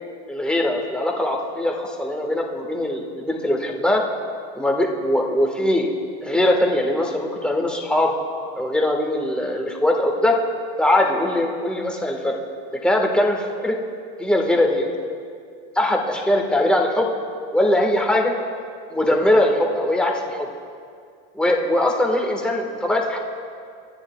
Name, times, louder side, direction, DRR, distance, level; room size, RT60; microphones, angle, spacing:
voice 1, 0.3-4.0 4.5-5.9 6.2-8.1 8.6-10.3 10.8-12.4 12.7-13.8 14.2-14.9 15.7-17.1 17.5-18.3 18.9-20.5 21.3-23.2, left 1 dB, 5° left, 0 dB, 1.5 m, -21 dB
26.0 x 9.9 x 2.3 m, 2.2 s
supercardioid pair, 120°, 31 cm